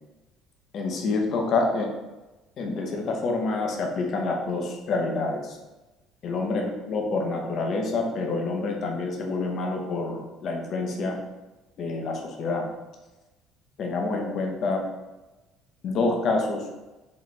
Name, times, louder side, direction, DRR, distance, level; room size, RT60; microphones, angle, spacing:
voice 1, 0.7-1.9 2.6-5.6 6.2-11.2 11.8-12.7 13.8-14.9 15.8-16.7, left 3 dB, 45° left, 2 dB, 0.7 m, -27 dB
4.1 x 3.0 x 3.2 m, 1.1 s
cardioid pair, 150°, 0 cm